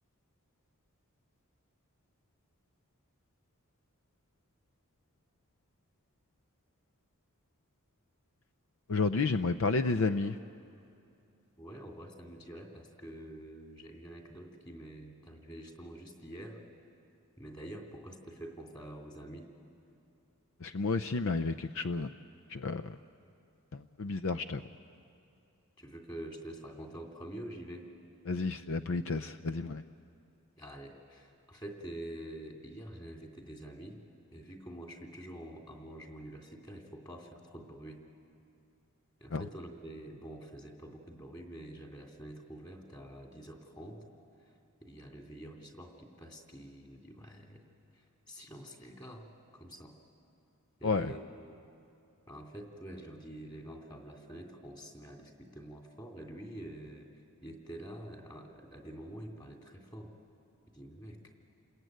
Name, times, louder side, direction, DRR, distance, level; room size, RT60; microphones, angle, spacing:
voice 1, 8.9-10.4 20.6-22.1 22.5-23.0 23.7-24.7 28.3-29.9 39.3-39.4 50.8-51.1, left 3 dB, 65° left, 11 dB, 0.6 m, -31 dB
voice 2, 11.6-16.6 17.4-19.5 25.8-27.9 30.6-34.0 34.3-38.0 39.2-44.0 44.4-44.5 44.8-47.7 47.9-49.3 49.5-49.9 50.8-51.6 52.3-57.1 57.4-60.1 60.7-61.3, right 1 dB, 20° left, 1 dB, 2.9 m, -47 dB
29.0 x 21.5 x 9.3 m, 2.7 s
head